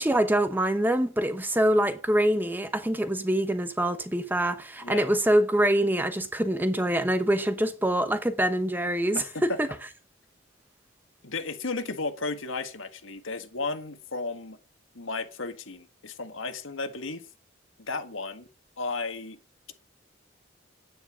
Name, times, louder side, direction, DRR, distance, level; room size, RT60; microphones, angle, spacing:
voice 1, 0.0-9.7, right 1 dB, 10° right, 0.9 m, -25 dB
voice 2, 9.1-9.6 11.2-14.6 14.9-17.2 17.9-18.5 18.8-19.4, left 3 dB, 85° left, 1.7 m, -34 dB
10.0 x 9.3 x 6.2 m
head